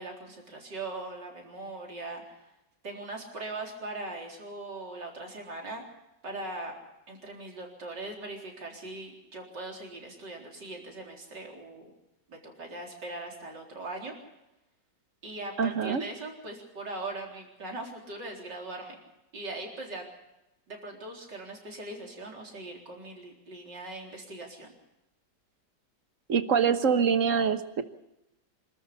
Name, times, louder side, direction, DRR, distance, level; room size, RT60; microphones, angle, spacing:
voice 1, 0.0-2.4 2.8-5.8 6.2-6.8 7.1-11.9 12.3-14.1 15.2-19.0 19.3-20.0 20.7-24.7, right 2 dB, 75° right, 0 dB, 4.7 m, -40 dB
voice 2, 15.6-16.0 26.3-27.8, right 6 dB, 50° right, 10 dB, 1.4 m, -25 dB
26.5 x 13.5 x 8.4 m, 0.94 s
omnidirectional pair, 1.9 m